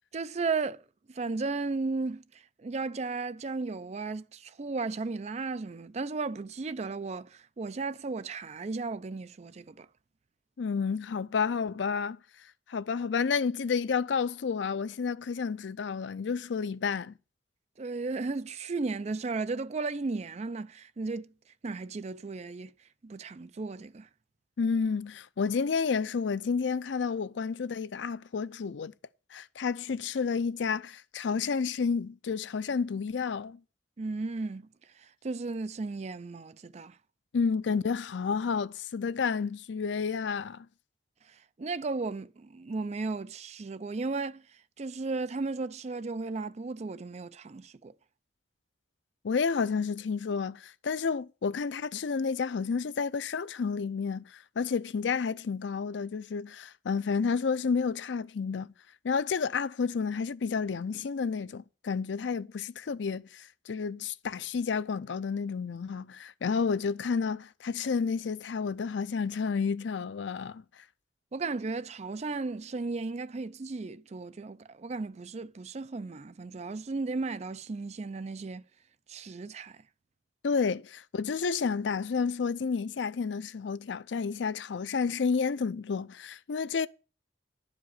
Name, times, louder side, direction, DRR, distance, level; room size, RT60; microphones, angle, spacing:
voice 1, 0.1-9.9 17.8-21.3 21.6-22.7 23.0-24.1 34.0-34.7 34.9-37.0 41.3-44.4 44.8-47.9 71.3-78.6 79.1-79.8, right 3 dB, 35° right, 0.4 m, -35 dB
voice 2, 10.6-12.2 12.7-17.1 24.6-28.9 29.3-33.6 37.3-40.7 49.2-58.7 59.0-70.6 80.4-86.9, left 5 dB, 80° left, 0.5 m, -30 dB
11.0 x 5.1 x 8.2 m
head